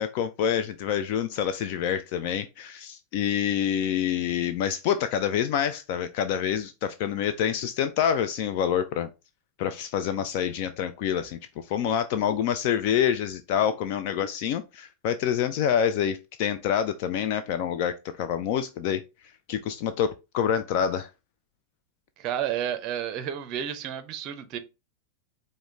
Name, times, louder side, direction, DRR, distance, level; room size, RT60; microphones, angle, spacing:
voice 1, 0.0-9.1 9.6-11.4 11.7-19.0 19.5-21.1, left 9 dB, 45° left, 0.3 m, -27 dB
voice 2, 22.2-24.6, right 10 dB, 40° right, 0.5 m, -31 dB
4.9 x 2.1 x 3.6 m
figure-of-eight pair, 90°, 0 cm